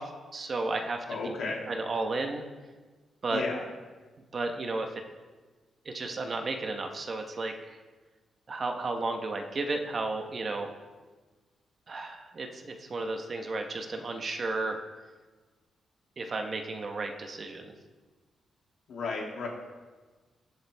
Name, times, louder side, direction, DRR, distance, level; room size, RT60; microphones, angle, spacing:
voice 1, 0.0-1.0 1.2-1.3 1.7-2.4 3.2-3.4 4.3-5.0 5.8-7.8 8.5-10.7 11.9-14.8 16.2-17.7, right 3 dB, 40° right, 4 dB, 1.2 m, -33 dB
voice 2, 1.1-1.6 3.3-3.6 18.9-19.5, left 4 dB, 70° left, -2 dB, 3.0 m, -33 dB
21.0 x 7.2 x 3.6 m, 1.3 s
cardioid pair, 135°, 0 cm